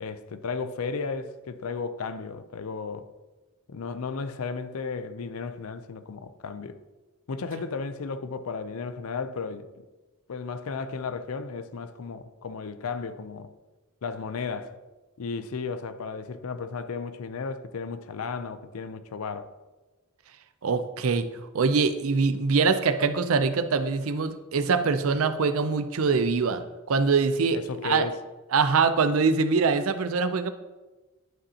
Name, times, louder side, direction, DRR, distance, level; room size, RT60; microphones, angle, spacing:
voice 1, 0.0-3.1 3.7-6.8 7.3-9.7 10.3-13.5 14.0-14.8 15.2-19.5 27.5-28.2, left 5 dB, 80° left, 0.5 m, -34 dB
voice 2, 20.6-21.3 21.5-28.0 28.5-30.5, right 4 dB, 70° right, 0.5 m, -23 dB
11.0 x 5.2 x 2.8 m
head